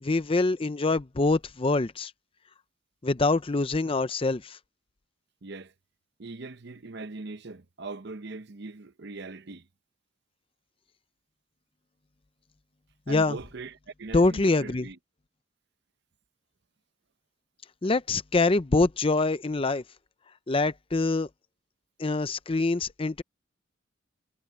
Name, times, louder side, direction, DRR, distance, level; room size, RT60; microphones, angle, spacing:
voice 1, 0.0-2.1 3.0-4.6 13.1-13.4 14.1-14.9 17.8-19.8 20.5-21.3 22.0-23.2, left 3 dB, 25° left, 0.6 m, -25 dB
voice 2, 5.4-5.7 6.2-9.7 13.1-15.0, right 3 dB, 60° right, 0.9 m, -40 dB
head